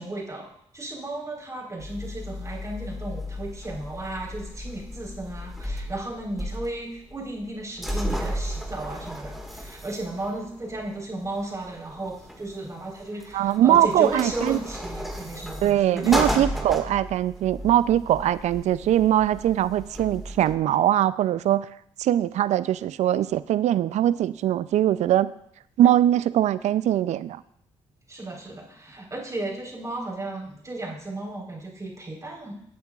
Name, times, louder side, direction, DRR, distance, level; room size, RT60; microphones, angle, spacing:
voice 1, 0.0-16.7 28.1-32.6, right 2 dB, 25° right, -2 dB, 4.0 m, -34 dB
sound 1, 1.8-20.6, equal, ahead, 1.8 m, -35 dB
voice 2, 13.3-14.6 15.6-21.7 22.0-25.3 25.8-27.4, right 12 dB, 70° right, 16 dB, 0.4 m, -21 dB
17.0 x 8.5 x 2.4 m, 0.73 s
supercardioid pair, 55°, 12 cm